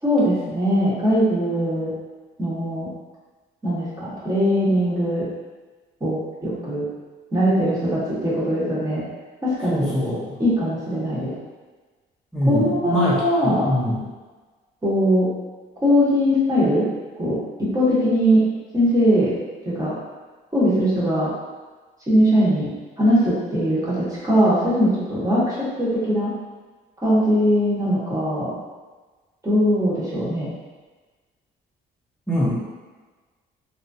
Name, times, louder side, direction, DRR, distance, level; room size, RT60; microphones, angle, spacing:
voice 1, 0.0-1.9 2.4-2.9 3.6-5.3 6.0-6.9 7.3-9.0 9.4-9.8 10.4-11.3 12.5-13.7 14.8-15.3 15.8-16.8 17.2-18.4 18.7-19.3 19.6-19.9 20.5-21.3 22.1-22.7 23.0-26.3 27.0-28.5 29.4-30.5, equal, 15° right, -9 dB, 1.1 m, -20 dB
voice 2, 9.7-10.4 12.3-14.1 32.3-32.5, equal, 5° left, -8 dB, 0.8 m, -23 dB
2.9 x 2.4 x 2.6 m, 1.3 s
cardioid pair, 90°, 20 cm